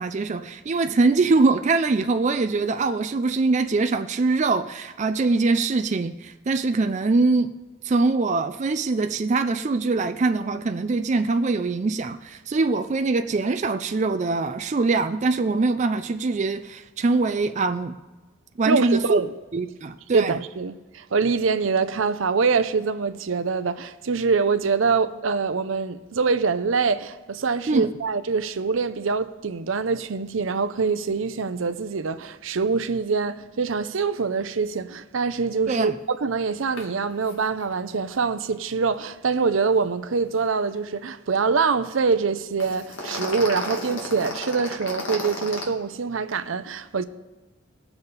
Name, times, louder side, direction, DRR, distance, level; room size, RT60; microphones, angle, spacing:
voice 1, 0.0-7.5 7.8-17.9 18.6-19.2 19.5-20.4 27.7-27.9 35.7-35.9, right 3 dB, 35° right, 0.4 m, -23 dB
voice 2, 18.7-19.3 20.1-47.0, right 5 dB, 80° right, 0.6 m, -24 dB
sound 1, 36.8-36.9 37.2-37.3 37.6-37.7 42.6-45.6, left 2 dB, 75° left, 1.9 m, -32 dB
20.0 x 7.0 x 4.0 m
head